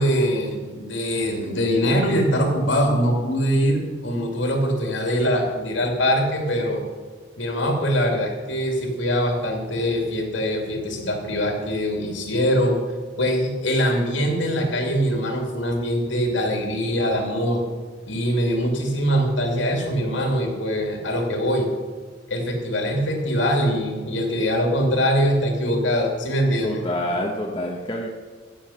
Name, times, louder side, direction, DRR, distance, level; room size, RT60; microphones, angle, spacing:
voice 1, 0.0-6.8 7.4-12.8 13.2-17.6 18.0-21.7 22.3-26.8, equal, 80° left, 2 dB, 2.6 m, -23 dB
voice 2, 26.6-28.1, left 1 dB, 25° left, -1 dB, 1.0 m, -27 dB
15.5 x 7.1 x 5.7 m, 1.5 s
head